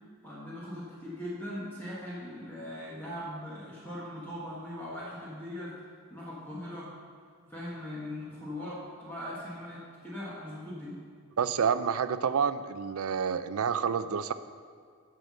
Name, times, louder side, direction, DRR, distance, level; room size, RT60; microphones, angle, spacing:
voice 1, 0.2-5.7 6.1-6.9 7.5-11.0, left 1 dB, 10° left, -8 dB, 1.6 m, -40 dB
voice 2, 11.4-14.3, right 6 dB, 80° right, 13 dB, 0.4 m, -28 dB
9.6 x 5.8 x 6.3 m, 2.1 s
head